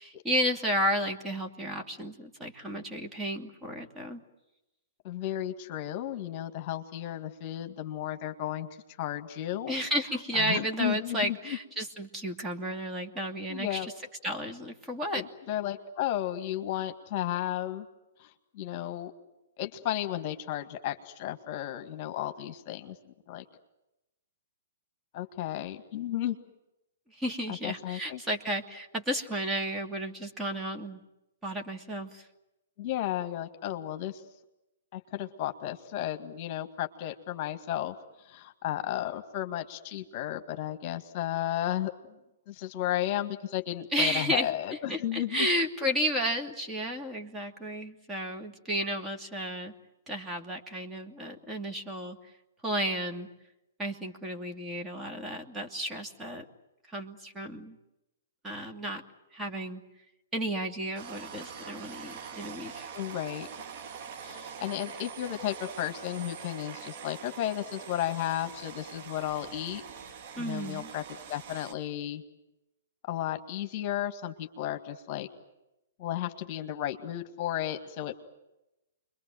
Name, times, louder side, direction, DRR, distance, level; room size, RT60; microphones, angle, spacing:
voice 1, 0.0-4.2 9.7-13.9 14.2-15.2 27.2-31.0 31.4-32.2 43.9-44.5 44.9-49.7 50.1-52.2 52.6-53.3 53.8-56.4 56.9-57.8 58.4-59.0 59.3-59.8 60.3-62.9 70.4-70.9, equal, 10° right, 1 dB, 2.6 m, -32 dB
voice 2, 5.0-8.7 9.0-9.7 10.3-11.6 13.5-13.9 15.1-17.9 18.2-19.1 19.6-23.4 25.1-26.4 27.6-28.2 32.8-34.2 34.9-41.9 42.5-45.5 62.9-63.5 64.2-69.8 70.4-71.0 71.3-72.2 73.0-75.3 76.0-78.1, left 12 dB, 40° left, 7 dB, 1.9 m, -33 dB
sound 1, 60.9-71.7, right 6 dB, 45° right, 2.4 m, -44 dB
29.5 x 22.5 x 7.8 m, 0.93 s
figure-of-eight pair, 120°, 0 cm